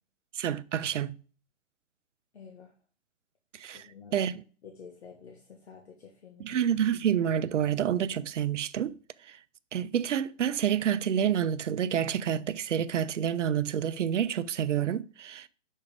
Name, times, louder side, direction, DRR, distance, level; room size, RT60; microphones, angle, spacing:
voice 1, 0.3-1.2 3.5-4.4 6.4-9.0 9.2-9.4 9.7-15.5, right 9 dB, 75° right, 0.6 m, -28 dB
voice 2, 2.3-2.7 3.7-4.2 4.6-6.6, left 6 dB, 60° left, 1.5 m, -50 dB
6.0 x 5.6 x 3.3 m
hypercardioid pair, 165°, 36 cm